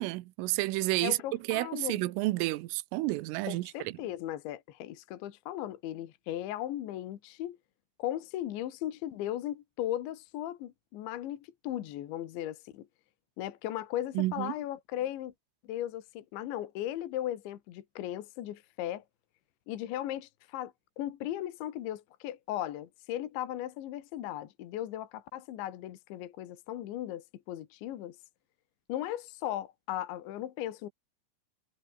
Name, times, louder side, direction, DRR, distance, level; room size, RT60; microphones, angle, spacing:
voice 1, 0.0-1.2 1.5-3.9 14.2-14.5, right 19 dB, 80° right, 3.5 m, -30 dB
voice 2, 1.0-2.0 3.5-7.6 8.0-12.9 13.4-15.3 15.7-19.0 19.7-28.2 28.9-30.9, left 12 dB, 70° left, 3.8 m, -37 dB
omnidirectional pair, 5.8 m